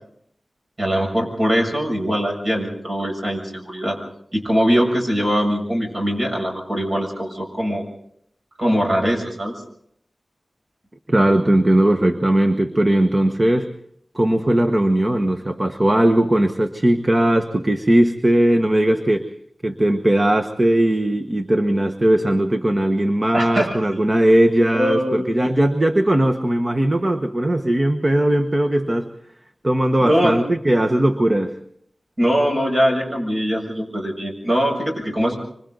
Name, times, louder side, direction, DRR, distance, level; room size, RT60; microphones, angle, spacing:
voice 1, 0.8-4.0 4.3-7.8 8.6-9.5 23.3-23.8 24.7-25.3 30.0-30.4 32.2-35.4, equal, 45° right, 1 dB, 7.4 m, -21 dB
voice 2, 11.1-13.7 14.1-19.2 19.6-29.1 29.6-31.5, right 1 dB, 30° right, 6 dB, 1.2 m, -18 dB
26.0 x 25.5 x 4.0 m, 0.68 s
wide cardioid pair, 80°, 0 cm